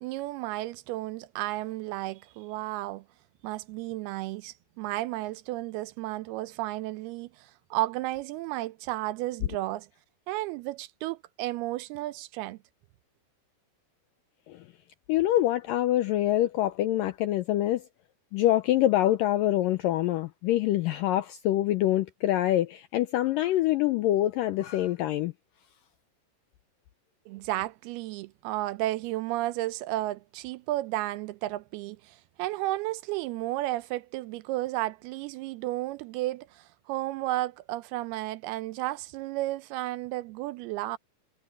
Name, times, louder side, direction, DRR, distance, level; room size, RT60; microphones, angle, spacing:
voice 1, 0.0-3.0 3.4-9.9 10.3-12.6 27.3-41.0, right 17 dB, 80° right, 2.5 m, -33 dB
voice 2, 15.1-17.8 18.3-25.3, left 14 dB, 90° left, 2.0 m, -25 dB
omnidirectional pair, 4.7 m